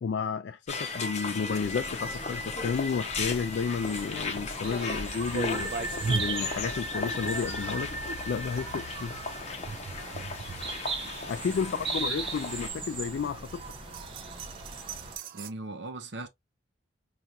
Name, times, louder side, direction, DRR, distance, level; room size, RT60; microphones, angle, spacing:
voice 1, 0.0-7.9 8.3-9.1 11.3-13.5, left 6 dB, 65° left, 0.3 m, -32 dB
sound 1, 0.7-12.7, left 3 dB, 35° left, 0.8 m, -36 dB
sound 2, 1.5-15.2, right 3 dB, 30° right, 1.0 m, -39 dB
sound 3, 4.8-15.5, right 4 dB, 50° right, 0.3 m, -40 dB
voice 2, 11.5-11.9 15.3-16.3, right 2 dB, 65° right, 0.7 m, -40 dB
4.5 x 2.5 x 2.6 m
head